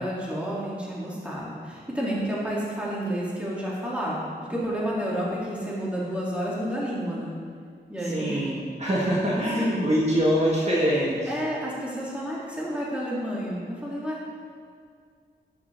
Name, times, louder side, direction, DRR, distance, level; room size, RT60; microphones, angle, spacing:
voice 1, 0.0-7.3 7.9-8.4 9.3-9.8 11.3-14.4, equal, 5° right, -7 dB, 2.5 m, -30 dB
voice 2, 8.1-11.3, equal, 40° right, -6 dB, 1.5 m, -24 dB
12.0 x 6.6 x 3.5 m, 2.1 s
wide cardioid pair, 90°, 18 cm